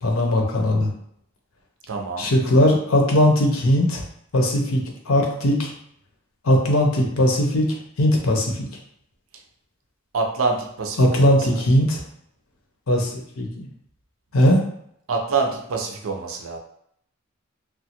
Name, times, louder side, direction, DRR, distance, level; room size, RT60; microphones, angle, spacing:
voice 1, 0.0-0.9 2.2-4.0 4.3-5.7 6.4-7.7 8.0-8.7 11.0-12.0 12.9-13.7 14.3-14.6, left 1 dB, 70° left, 1 dB, 0.6 m, -19 dB
voice 2, 1.9-2.3 10.1-11.2 11.5-11.6 15.1-16.6, right 4 dB, 65° right, 2 dB, 0.5 m, -26 dB
3.0 x 2.2 x 2.8 m, 0.71 s
head